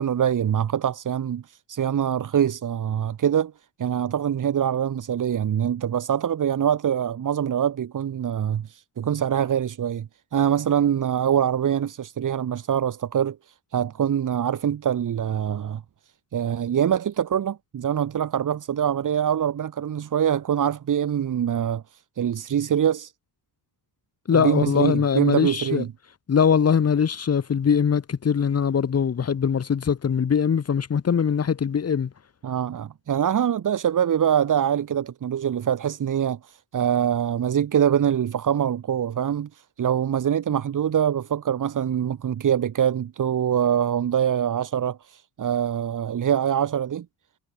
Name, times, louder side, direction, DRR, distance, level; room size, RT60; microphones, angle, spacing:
voice 1, 0.0-1.4 1.7-3.5 3.8-13.4 13.7-15.8 16.3-21.8 22.2-23.1 24.3-25.9 32.4-36.4 36.7-39.5 39.8-47.1, right 9 dB, 50° right, 4.1 m, -24 dB
voice 2, 24.3-25.8 26.3-32.1, left 7 dB, 40° left, 3.5 m, -22 dB
cardioid pair, 115°, 40 cm